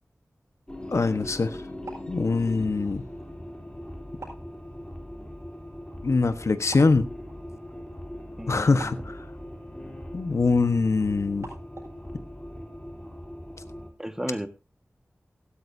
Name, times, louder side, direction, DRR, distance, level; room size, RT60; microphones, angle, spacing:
sound 1, 0.7-13.9, left 1 dB, 15° left, 3.4 m, -40 dB
voice 1, 0.9-1.6 2.1-3.0 6.0-7.0 8.5-9.2 10.1-11.5, left 3 dB, 70° left, 11 dB, 1.3 m, -23 dB
sound 2, 1.6-12.1, right 2 dB, 70° right, 7.2 m, -50 dB
voice 2, 8.4-9.0 14.0-14.5, equal, 10° right, 9 dB, 1.7 m, -33 dB
15.5 x 13.0 x 2.8 m, 0.31 s
wide cardioid pair, 50°, 5 cm